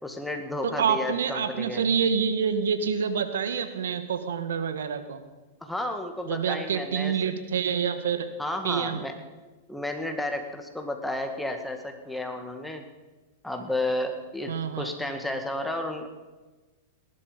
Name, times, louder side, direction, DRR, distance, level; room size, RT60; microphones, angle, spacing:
voice 1, 0.0-1.8 5.6-7.4 8.4-9.1 9.7-12.8 13.4-16.1, left 1 dB, 5° left, 4 dB, 2.1 m, -32 dB
voice 2, 0.6-5.2 6.3-8.3 8.6-9.0 14.5-14.9, right 7 dB, 80° right, 9 dB, 1.5 m, -27 dB
19.0 x 11.5 x 5.2 m, 1.2 s
hypercardioid pair, 110°, 0 cm